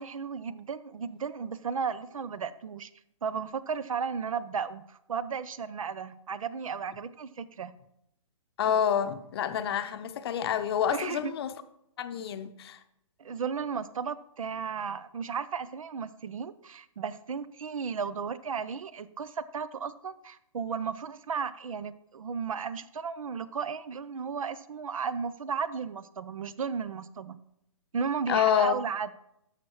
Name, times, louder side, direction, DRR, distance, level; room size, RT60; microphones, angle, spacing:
voice 1, 0.0-2.9 3.2-7.7 10.9-11.3 13.2-27.4 27.9-29.1, right 6 dB, 80° right, 0.6 m, -34 dB
voice 2, 8.6-11.5 12.0-12.8 28.3-28.8, left 9 dB, 50° left, 0.7 m, -28 dB
13.0 x 5.8 x 3.1 m
hypercardioid pair, 140°, 17 cm